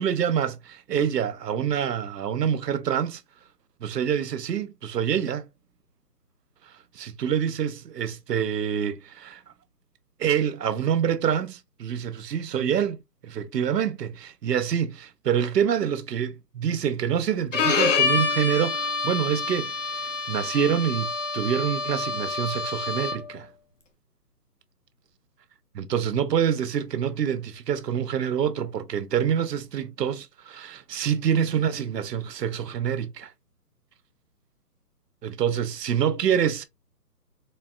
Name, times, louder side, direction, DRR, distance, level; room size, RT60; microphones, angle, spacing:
voice 1, 0.0-3.2 3.8-5.5 7.0-9.4 10.2-13.0 13.2-23.5 25.8-33.3 35.2-36.6, right 8 dB, 90° right, 0.7 m, -26 dB
Bowed string instrument, 17.5-23.4, left 4 dB, 50° left, 0.9 m, -27 dB
4.1 x 2.1 x 2.2 m
hypercardioid pair, 165°, 47 cm